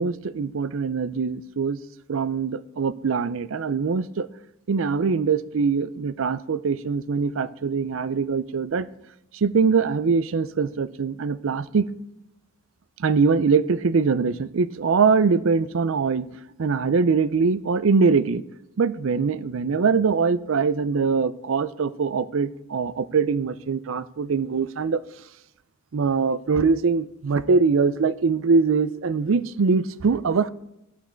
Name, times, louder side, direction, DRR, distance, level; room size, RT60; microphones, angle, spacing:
voice 1, 0.0-1.8 2.1-4.3 4.7-8.9 9.4-11.8 13.0-16.3 16.6-18.4 18.8-25.0 25.9-30.5, right 5 dB, 75° right, 17 dB, 0.5 m, -22 dB
11.5 x 8.4 x 4.5 m, 0.85 s
head